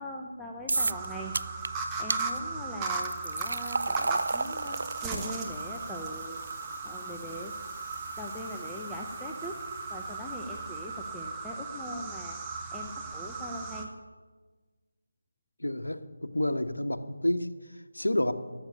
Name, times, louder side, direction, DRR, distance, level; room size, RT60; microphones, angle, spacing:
voice 1, 0.0-1.7 2.0-6.4 6.8-7.5 8.2-9.6 9.9-12.4 12.7-13.9, left 1 dB, 5° left, -1 dB, 0.8 m, -41 dB
sound 1, 0.7-13.8, right 4 dB, 15° right, 1.2 m, -37 dB
sound 2, 0.7-1.1 1.3-1.7 2.1-2.2 2.9-10.0, right 3 dB, 60° right, 0.4 m, -35 dB
voice 2, 15.6-18.3, left 1 dB, 85° left, 8 dB, 1.1 m, -30 dB
14.0 x 7.2 x 9.7 m, 1.4 s
figure-of-eight pair, 160°, 0 cm